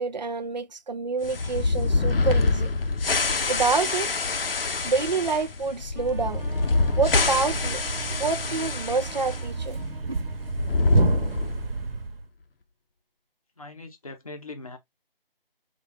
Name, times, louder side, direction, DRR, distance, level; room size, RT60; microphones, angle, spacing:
voice 1, 0.0-2.7 3.5-4.1 4.8-6.4 7.0-7.8 8.2-9.8 10.1-10.2, right 4 dB, 50° right, 0.4 m, -27 dB
sound 1, 1.2-9.4 9.7-9.8 10.4-11.8, left 3 dB, 75° left, 0.7 m, -26 dB
sound 2, 5.9-10.8, right 2 dB, 10° left, 0.9 m, -48 dB
Thump thud, 6.1-12.3, right 4 dB, 75° right, 0.8 m, -31 dB
voice 2, 13.6-14.8, left 3 dB, 40° left, 0.7 m, -40 dB
3.6 x 2.4 x 3.2 m
figure-of-eight pair, 175°, 29 cm